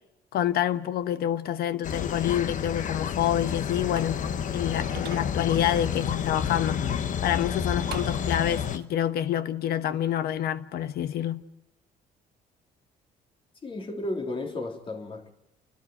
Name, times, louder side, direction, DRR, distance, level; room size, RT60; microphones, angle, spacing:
voice 1, 0.3-4.2 4.5-6.8 7.2-11.4, left 11 dB, 65° left, 1.2 m, -27 dB
sound 1, 1.8-8.8, left 8 dB, 50° left, 1.1 m, -30 dB
sound 2, 4.0-5.3 7.9-8.9, right 12 dB, 70° right, 1.2 m, -43 dB
voice 2, 13.6-15.3, left 2 dB, 30° left, 3.4 m, -33 dB
30.0 x 12.5 x 9.1 m
cardioid pair, 110°, 17 cm